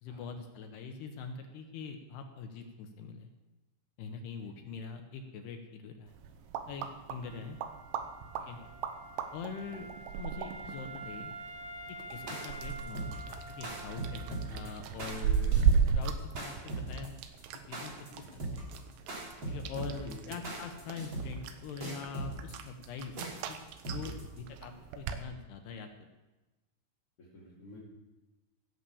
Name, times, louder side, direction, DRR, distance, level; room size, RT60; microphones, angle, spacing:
voice 1, 0.0-3.3 4.0-6.1 6.7-7.6 8.5-8.6 9.3-9.9 10.2-11.3 12.1-13.1 13.5-15.6 15.9-17.2 17.5-17.9 19.5-23.2 23.5-23.6 23.9-26.1, left 5 dB, 75° left, 5 dB, 2.6 m, -43 dB
voice 2, 4.4-4.8 7.3-7.5 8.4-8.8 9.7-9.9 12.1-12.4 15.3-15.5 18.1-18.4 19.9-20.4 20.9-21.1 24.0-24.3 27.2-27.8, left 1 dB, 40° left, -6 dB, 2.6 m, -52 dB
sound 1, 6.1-25.2, right 6 dB, 80° right, 3.1 m, -36 dB
Wind instrument woodwind instrument, 7.2-15.0, right 1 dB, 55° right, 4.1 m, -48 dB
sound 2, 12.1-24.4, right 2 dB, 30° right, 3.0 m, -39 dB
17.0 x 7.7 x 7.1 m, 1.1 s
omnidirectional pair, 5.6 m